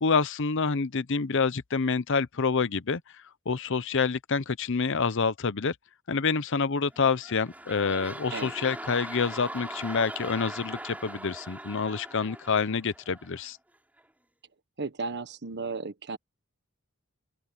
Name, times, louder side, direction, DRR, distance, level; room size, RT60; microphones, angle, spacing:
voice 1, 0.0-3.0 3.5-5.7 6.1-13.6, left 5 dB, 60° left, 0.8 m, -27 dB
sound 1, 6.9-13.5 14.0-14.1, right 1 dB, 5° right, 4.7 m, -41 dB
voice 2, 14.8-16.2, right 4 dB, 55° right, 1.3 m, -34 dB
open air
head